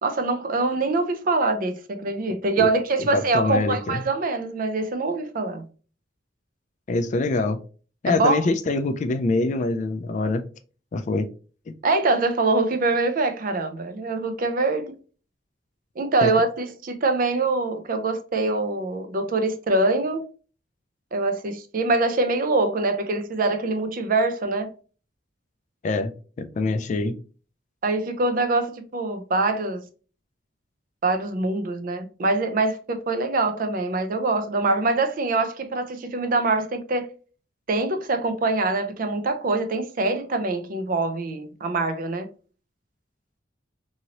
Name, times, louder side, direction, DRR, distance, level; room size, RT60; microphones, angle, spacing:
voice 1, 0.0-5.6 8.1-8.5 11.8-14.9 16.0-20.2 21.1-24.7 27.8-29.8 31.0-37.1 37.7-42.3, right 3 dB, 50° right, 0.5 m, -24 dB
voice 2, 3.0-4.0 6.9-7.6 8.0-10.4 10.9-11.3 11.7-11.8 16.2-16.3 25.8-26.1 26.4-27.2, left 3 dB, 40° left, 0.3 m, -24 dB
2.9 x 2.7 x 2.8 m
head